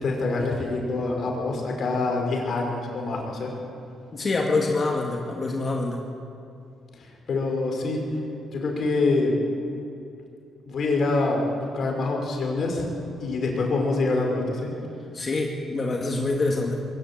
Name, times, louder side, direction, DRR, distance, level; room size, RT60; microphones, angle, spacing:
voice 1, 0.0-3.5 7.0-8.0 8.5-9.3 10.7-12.8 13.2-14.7, left 3 dB, 55° left, 1 dB, 5.3 m, -25 dB
voice 2, 4.1-6.0 15.1-16.8, left 3 dB, 40° left, 1 dB, 2.2 m, -25 dB
22.0 x 15.5 x 9.0 m, 2.7 s
cardioid pair, 90°, 0 cm